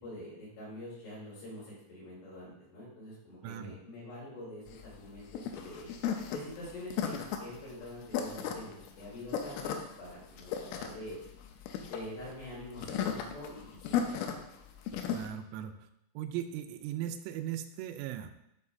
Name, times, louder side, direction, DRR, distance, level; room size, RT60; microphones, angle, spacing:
voice 1, 0.0-5.9 6.3-11.2 11.9-14.4, left 1 dB, 55° left, -7 dB, 5.4 m, -45 dB
voice 2, 3.4-3.7 15.1-15.7 16.2-18.3, right 11 dB, 90° right, 8 dB, 3.3 m, -38 dB
sound 1, 4.7-15.3, left 8 dB, 90° left, 3.3 m, -36 dB
12.0 x 5.7 x 2.7 m, 0.82 s
omnidirectional pair, 5.8 m